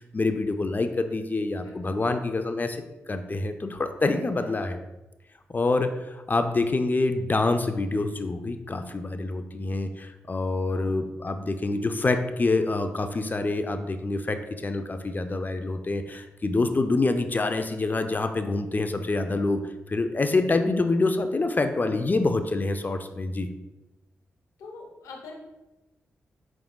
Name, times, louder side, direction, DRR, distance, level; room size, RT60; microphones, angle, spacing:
voice 1, 0.1-2.8 3.1-4.8 5.5-19.6 19.9-23.5, left 3 dB, 35° left, 7 dB, 0.4 m, -26 dB
voice 2, 10.7-11.2 22.4-22.5 24.6-25.4, left 3 dB, 85° left, 0 dB, 0.8 m, -44 dB
4.7 x 3.5 x 2.3 m, 1.0 s
supercardioid pair, 40°, 5 cm